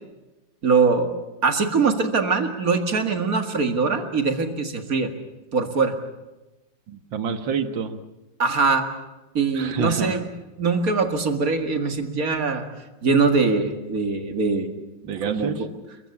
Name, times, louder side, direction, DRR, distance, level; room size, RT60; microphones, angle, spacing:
voice 1, 0.6-1.1 1.4-5.1 5.5-5.9 8.4-8.8 9.3-10.2 10.6-12.6 13.0-14.7 15.2-15.7, right 4 dB, 50° right, 7 dB, 2.3 m, -22 dB
voice 2, 6.9-8.0 9.5-10.2 15.0-15.7, right 5 dB, 80° right, 10 dB, 2.1 m, -27 dB
30.0 x 15.0 x 8.5 m, 1.1 s
omnidirectional pair, 2.1 m